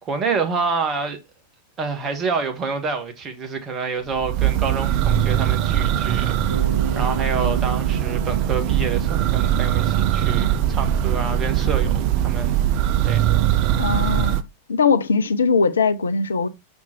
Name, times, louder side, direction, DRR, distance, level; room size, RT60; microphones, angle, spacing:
voice 1, 0.0-1.2 1.8-12.6 13.0-13.3, right 4 dB, 25° right, 1.4 m, -28 dB
Church bell, 4.1-14.4, right 11 dB, 45° right, 0.5 m, -21 dB
Bass guitar, 6.5-10.6, right 3 dB, 75° right, 1.2 m, -36 dB
voice 2, 13.8-14.4 14.7-16.5, left 5 dB, 70° left, 0.5 m, -20 dB
5.8 x 4.3 x 4.3 m
figure-of-eight pair, 90°, 0 cm